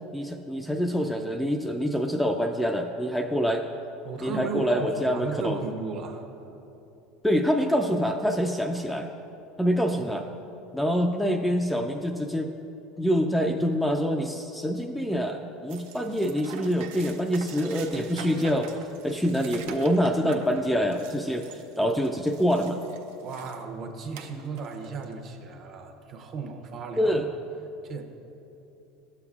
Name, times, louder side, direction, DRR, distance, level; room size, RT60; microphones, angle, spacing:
voice 1, 0.1-3.6 4.2-5.6 7.2-9.1 9.6-10.3 10.7-12.6 13.0-18.7 19.0-22.8 27.0-27.3, equal, ahead, 3 dB, 0.3 m, -26 dB
voice 2, 4.0-6.3 23.2-27.1 27.8-28.0, right 4 dB, 40° right, 5 dB, 0.7 m, -35 dB
sound 1, 15.7-23.6 24.1-25.1, right 7 dB, 80° right, 0.5 m, -44 dB
12.5 x 6.9 x 2.4 m, 2.9 s
supercardioid pair, 130°, 0 cm